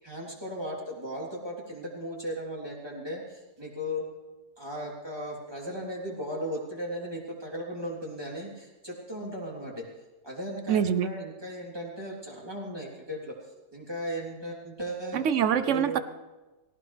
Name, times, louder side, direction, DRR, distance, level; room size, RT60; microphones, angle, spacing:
voice 1, 0.0-4.0 4.6-9.8 10.2-13.3 13.7-15.2 15.6-16.0, equal, 15° right, -4 dB, 3.3 m, -36 dB
voice 2, 10.7-11.1 15.1-16.0, right 8 dB, 65° right, 12 dB, 0.7 m, -24 dB
18.5 x 18.0 x 3.4 m, 1.1 s
omnidirectional pair, 1.9 m